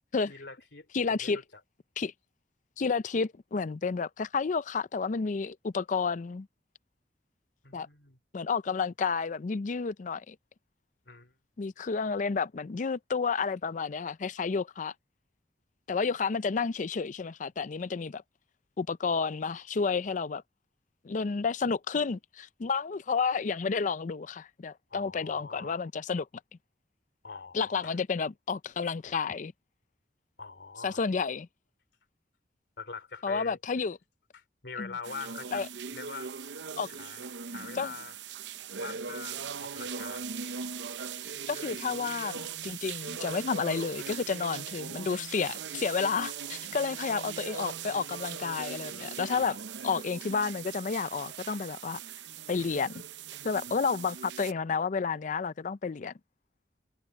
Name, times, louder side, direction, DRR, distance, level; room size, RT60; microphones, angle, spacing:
voice 1, 0.3-1.6 7.6-8.2 11.1-11.3 24.9-25.9 27.2-27.9 30.4-31.1 32.8-33.6 34.3-35.7 35.9-36.3 37.0-38.1 38.8-40.6 53.7-53.8, left 4 dB, 75° left, 2.8 m, -44 dB
voice 2, 0.9-1.4 2.0-2.1 2.8-6.5 7.7-7.9 8.3-10.4 11.6-14.9 15.9-18.2 18.8-20.4 21.0-26.3 27.5-29.5 30.8-31.5 33.2-34.0 34.8-34.9 35.5-35.7 36.8-36.9 37.7-37.9 41.5-49.6 49.8-52.0 52.5-53.0 53.4-56.1, left 5 dB, 45° left, 0.4 m, -31 dB
sound 1, 35.0-54.5, right 7 dB, 90° right, 0.7 m, -40 dB
head